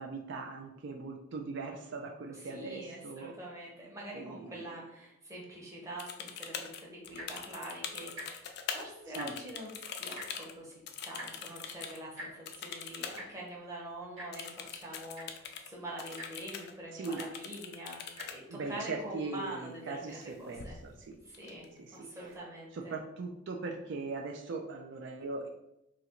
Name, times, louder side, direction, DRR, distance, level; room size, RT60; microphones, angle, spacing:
voice 1, 0.0-3.3 4.1-4.7 9.2-9.3 16.9-17.2 18.5-21.2 21.8-22.1 22.7-25.5, right 3 dB, 60° right, 2 dB, 0.4 m, -40 dB
voice 2, 2.3-20.8 21.2-22.9, right 1 dB, 15° right, -4 dB, 0.9 m, -45 dB
sound 1, 6.0-8.9 9.1-12.0 12.5-13.2 13.5-13.6 14.3-15.7 16.0-16.7 17.0-18.4 20.1-20.3 20.6-21.0 21.3-22.0, left 7 dB, 50° left, 0.4 m, -43 dB
Tick-tock, 7.0-7.4 8.1-8.3 8.6-8.7 9.0-9.5 10.2-10.3 11.2-11.3 12.2-12.3 13.2-13.3 14.2-14.3 14.9-15.0 15.1-15.5 16.2-16.3 17.2-17.3 18.1-18.3 19.0-19.1, equal, 80° right, 1.2 m, -44 dB
2.9 x 2.5 x 4.3 m, 0.88 s
head